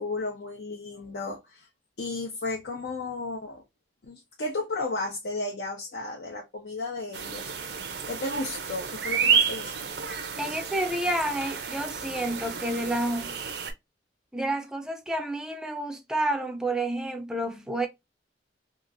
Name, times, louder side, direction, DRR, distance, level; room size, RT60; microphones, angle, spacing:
voice 1, 0.0-1.7 2.0-3.6 4.0-7.5 8.1-9.9, left 2 dB, 70° left, 0.7 m, -34 dB
sound 1, 7.1-13.7, right 6 dB, 65° right, 0.5 m, -30 dB
voice 2, 10.4-13.4 14.3-17.9, right 1 dB, 5° right, 0.4 m, -29 dB
2.9 x 2.4 x 2.5 m
head